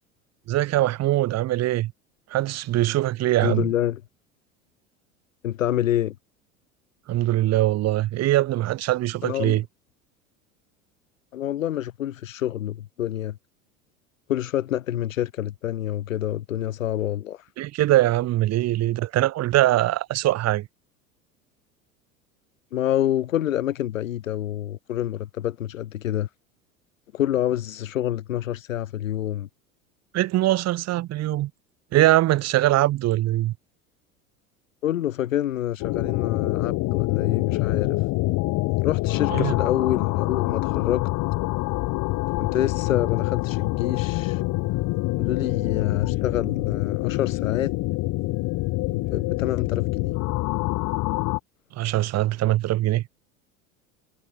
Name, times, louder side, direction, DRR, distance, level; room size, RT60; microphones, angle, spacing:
voice 1, 0.5-1.9 2.3-3.7 7.1-9.6 17.6-20.7 30.1-31.5 31.9-33.5 39.3-39.5 51.7-53.0, right 15 dB, 35° right, 2.0 m, -22 dB
voice 2, 3.4-4.0 5.4-6.1 9.2-9.6 11.3-13.4 14.3-17.5 22.7-26.3 27.1-29.5 34.8-38.0 38.8-41.0 42.4-44.4 45.2-47.8 48.9-50.1, left 12 dB, 70° left, 2.3 m, -27 dB
sound 1, 35.8-51.4, left 22 dB, 45° left, 2.6 m, -25 dB
figure-of-eight pair, 75°, 42 cm